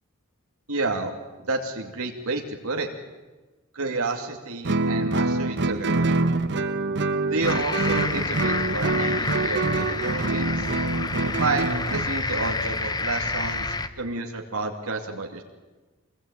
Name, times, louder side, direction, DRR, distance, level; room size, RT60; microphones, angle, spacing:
voice 1, 0.7-1.1 1.4-2.9 3.7-6.2 7.2-10.7 11.4-15.4, right 3 dB, 80° right, 2 dB, 2.6 m, -30 dB
Guitar, 4.6-12.1, right 2 dB, 55° right, 1.1 m, -25 dB
sound 1, 7.4-13.9, left 3 dB, 20° left, 1.1 m, -29 dB
25.5 x 20.5 x 9.0 m, 1.2 s
head